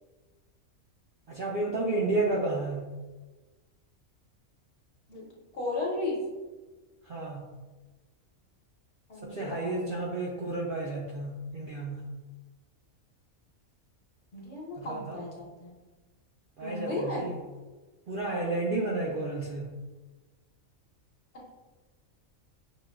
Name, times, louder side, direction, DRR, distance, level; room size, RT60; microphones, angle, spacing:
voice 1, 1.3-2.9 7.1-7.4 9.2-12.1 14.8-15.2 16.6-17.3 18.1-19.7, right 2 dB, 65° right, -2 dB, 0.5 m, -31 dB
voice 2, 5.5-6.2 9.1-10.0 14.3-15.8 16.6-17.3 21.3-21.5, left 2 dB, 60° left, -4 dB, 1.2 m, -35 dB
6.4 x 2.2 x 2.3 m, 1.2 s
omnidirectional pair, 1.4 m